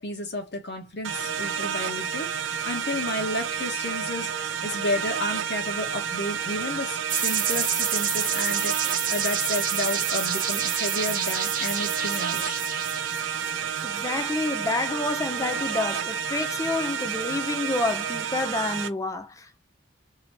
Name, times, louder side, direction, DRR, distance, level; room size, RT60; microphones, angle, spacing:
voice 1, 0.0-12.6, left 2 dB, 60° left, 1.1 m, -32 dB
sound 1, 1.0-18.9, right 7 dB, 80° right, 0.6 m, -30 dB
sound 2, 7.1-13.8, right 8 dB, 45° right, 0.9 m, -28 dB
voice 2, 13.8-19.6, left 2 dB, 15° left, 0.6 m, -29 dB
2.9 x 2.9 x 4.2 m
head